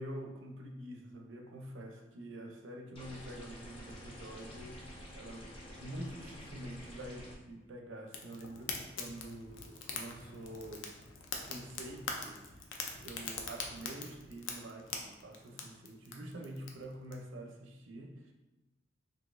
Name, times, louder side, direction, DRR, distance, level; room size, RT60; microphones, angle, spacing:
voice 1, 0.0-10.9 11.4-18.3, right 1 dB, 75° right, 2 dB, 0.6 m, -47 dB
sound 1, 3.0-7.4, equal, 25° left, 0.6 m, -49 dB
Fire, 8.1-17.1, left 4 dB, 75° left, 0.5 m, -43 dB
4.0 x 2.7 x 2.5 m, 1.1 s
head